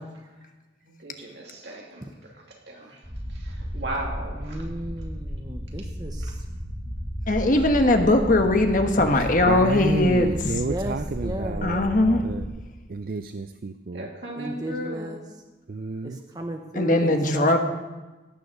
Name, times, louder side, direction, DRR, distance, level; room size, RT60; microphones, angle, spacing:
voice 1, 0.8-2.0 2.7-3.0 3.4-4.6 13.9-15.1, right 1 dB, 65° right, -1 dB, 2.7 m, -35 dB
sound 1, 3.0-12.5, equal, 5° right, 4.3 m, -34 dB
voice 2, 4.4-6.1 10.7-11.0 11.2-12.2 14.4-15.2 16.4-17.6, right 1 dB, 20° right, 3 dB, 0.8 m, -34 dB
voice 3, 7.3-10.6 11.6-12.2 16.7-17.6, left 2 dB, 45° left, 5 dB, 1.2 m, -20 dB
voice 4, 9.5-11.8 12.2-12.4 12.9-14.1 15.7-16.2, right 3 dB, 50° right, 10 dB, 0.4 m, -30 dB
17.5 x 7.0 x 6.5 m, 1.2 s
head